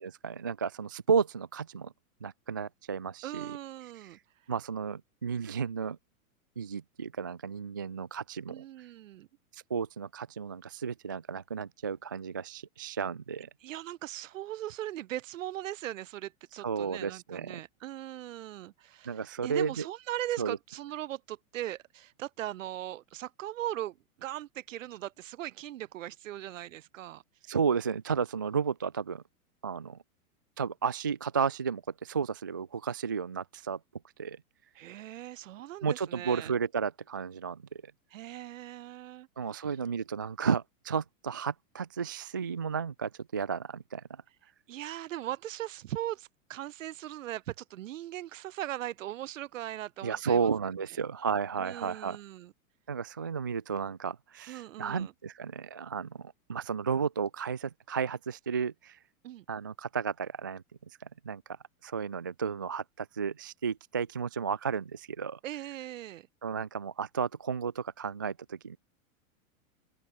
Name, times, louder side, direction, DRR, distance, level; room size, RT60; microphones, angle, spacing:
voice 1, 0.0-1.9 2.2-3.6 4.0-4.2 4.5-6.0 6.6-8.6 9.5-13.5 16.6-17.6 19.1-19.9 20.4-20.6 27.5-29.2 29.6-30.0 30.6-33.8 34.2-34.4 35.8-37.9 39.4-44.2 50.0-52.2 52.9-59.0 59.5-61.6 61.8-65.4 66.4-68.8, right 6 dB, 15° right, 0.3 m, -33 dB
voice 2, 3.2-4.2 8.5-9.3 13.6-27.2 34.8-36.5 38.1-39.3 44.7-50.5 51.6-52.5 54.5-55.1 59.2-59.5 65.4-66.3, right 13 dB, 60° right, 5.2 m, -39 dB
open air
supercardioid pair, 170°, 43 cm